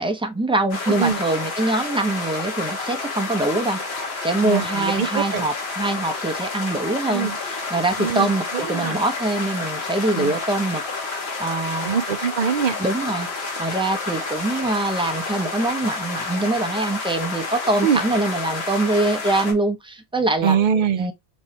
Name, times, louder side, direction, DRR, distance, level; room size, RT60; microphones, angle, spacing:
voice 1, 0.0-10.8 11.1-11.9 12.8-20.6 21.0-21.1, right 2 dB, 5° right, 0.5 m, -24 dB
sound 1, 0.7-19.5, left 3 dB, 70° left, 1.5 m, -29 dB
voice 2, 4.4-5.4 7.1-7.4 8.0-9.0 10.1-10.4 11.8-12.7 17.8-18.0 20.4-21.1, right 7 dB, 55° right, 0.6 m, -23 dB
5.3 x 3.1 x 2.8 m
omnidirectional pair, 1.1 m